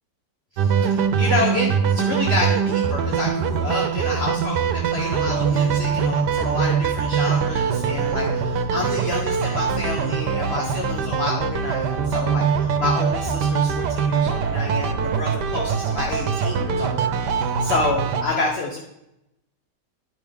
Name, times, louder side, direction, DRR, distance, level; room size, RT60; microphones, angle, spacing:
voice 1, 0.5-18.8, left 3 dB, 40° left, -2 dB, 1.3 m, -29 dB
sound 1, 0.6-18.2, right 6 dB, 80° right, 1.3 m, -23 dB
11.0 x 6.1 x 3.6 m, 0.85 s
omnidirectional pair, 1.8 m